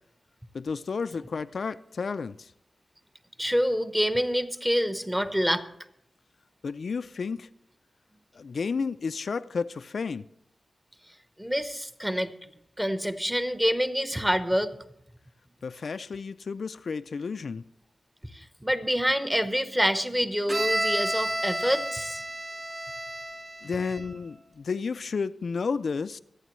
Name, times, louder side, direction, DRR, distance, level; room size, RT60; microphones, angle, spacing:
voice 1, 0.5-2.5 6.6-7.5 8.4-10.2 15.6-17.6 23.6-26.2, left 5 dB, 65° left, 0.4 m, -32 dB
voice 2, 3.4-5.7 11.4-12.3 12.8-14.7 18.3-22.2, equal, 5° right, 0.9 m, -26 dB
Bowed string instrument, 20.5-24.2, right 1 dB, 25° right, 2.9 m, -31 dB
25.0 x 9.1 x 3.1 m
wide cardioid pair, 90°, 0 cm